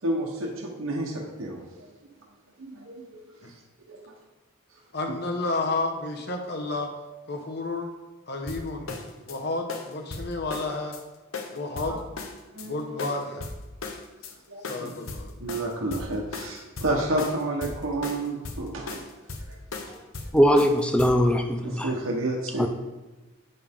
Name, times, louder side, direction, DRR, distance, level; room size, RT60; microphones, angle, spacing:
voice 1, 0.0-1.9 2.6-3.2 3.5-3.6 3.9-4.0 11.9-12.0 12.5-13.0 14.5-14.9 15.4-19.0 19.5-19.6 19.8-20.0 20.2-20.3 21.6-22.7, right 2 dB, 75° right, -2 dB, 1.1 m, -30 dB
voice 2, 4.9-6.9 7.3-7.9 8.3-8.9 9.3-11.0 11.5-12.0 12.6-13.5 14.7-15.3, left 2 dB, 50° left, 4 dB, 1.1 m, -31 dB
sound 1, 8.5-9.4 9.7-11.0 11.3-12.7 13.0-14.3 14.6-21.1, left 3 dB, 80° left, 1.0 m, -37 dB
voice 3, 20.3-21.9 22.6-22.7, equal, 5° left, 6 dB, 0.5 m, -20 dB
9.0 x 6.7 x 3.6 m, 1.2 s
head